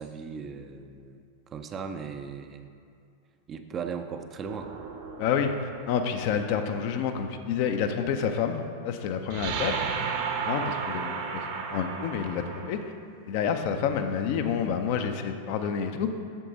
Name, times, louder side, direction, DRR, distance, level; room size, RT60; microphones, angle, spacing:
voice 1, 0.0-2.7 3.5-4.7, right 6 dB, 25° right, 7 dB, 0.5 m, -37 dB
sound 1, 4.5-6.4 9.3-12.7, right 6 dB, 50° right, 0.9 m, -33 dB
voice 2, 5.2-5.5 5.9-9.7 10.4-11.4 11.7-12.8 13.3-16.1, left 7 dB, 45° left, 6 dB, 0.5 m, -28 dB
8.3 x 6.7 x 3.9 m, 2.3 s
figure-of-eight pair, 90°, 0 cm